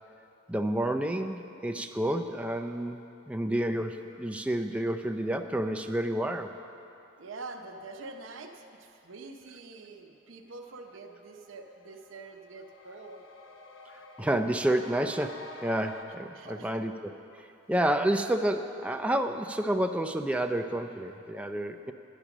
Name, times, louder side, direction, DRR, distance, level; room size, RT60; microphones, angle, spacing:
voice 1, 0.5-3.0 3.3-6.5 14.2-17.1 17.4-21.9, right 1 dB, 5° right, 6 dB, 0.4 m, -29 dB
voice 2, 7.2-13.2 16.3-16.8, right 3 dB, 80° right, 3 dB, 0.8 m, -45 dB
sound 1, 10.3-10.4 10.7-16.0, left 2 dB, 85° left, 0.8 m, -49 dB
10.0 x 9.9 x 6.0 m, 2.8 s
head